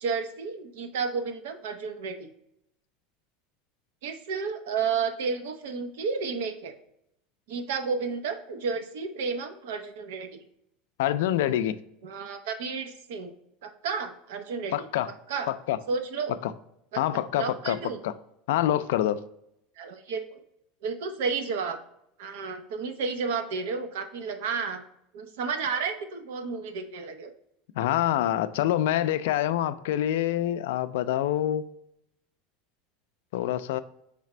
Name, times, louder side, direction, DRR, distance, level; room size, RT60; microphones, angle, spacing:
voice 1, 0.0-2.3 4.0-6.8 7.5-10.4 12.0-13.3 13.6-14.9 15.3-15.5 15.9-16.3 16.9-17.0 17.4-18.0 19.8-20.4 20.8-21.8 22.2-24.8 25.1-27.3, right 5 dB, 90° right, 0.7 m, -32 dB
voice 2, 11.0-11.7 14.7-15.1 15.5-15.8 16.4-16.5 17.0-17.8 18.0-18.1 18.5-19.2 27.8-31.6 33.3-33.8, left 12 dB, 85° left, 0.3 m, -26 dB
4.9 x 3.3 x 3.2 m
supercardioid pair, 165°, 0 cm